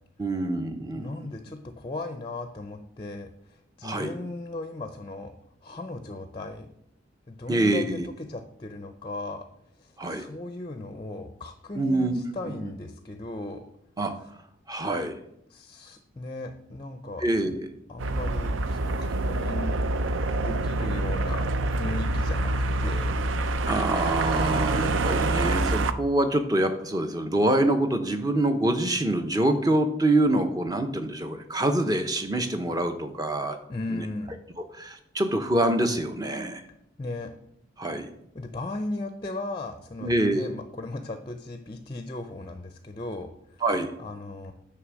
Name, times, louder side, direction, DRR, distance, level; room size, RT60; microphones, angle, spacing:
voice 1, 0.2-1.2 3.8-4.1 7.5-8.0 10.0-10.2 11.8-12.2 14.0-14.1 14.7-15.1 17.2-17.5 23.7-33.6 33.9-34.0 34.8-36.6 37.8-38.1 40.0-40.5 43.6-43.9, right 1 dB, 20° right, 7 dB, 0.7 m, -25 dB
voice 2, 0.9-5.3 5.6-6.7 7.3-9.5 9.8-13.6 15.5-17.6 17.9-18.5 18.8-19.8 20.4-22.5 22.8-23.1 33.7-34.3 37.0-37.3 38.3-43.3 44.0-44.5, left 2 dB, 25° left, 7 dB, 0.5 m, -37 dB
sound 1, 18.0-25.9, right 2 dB, 85° right, 0.5 m, -26 dB
9.2 x 3.4 x 6.3 m, 0.76 s
head